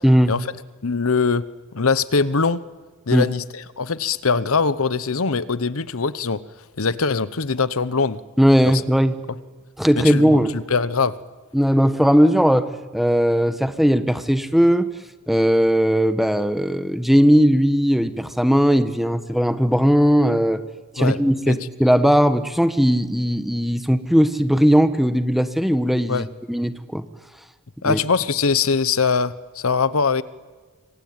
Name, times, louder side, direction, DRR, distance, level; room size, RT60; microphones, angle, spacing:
voice 1, 0.8-1.4 1.7-2.6 3.1-3.4 3.8-6.4 6.8-8.2 10.0-11.1 21.0-21.2 21.5-21.6 26.1-26.3 27.8-30.2, left 4 dB, 70° left, 16 dB, 1.0 m, -22 dB
voice 2, 8.4-9.2 9.8-10.5 11.5-14.9 15.3-20.6 20.9-27.0 27.8-28.0, equal, ahead, 10 dB, 1.3 m, -18 dB
26.5 x 24.0 x 8.9 m, 1.4 s
head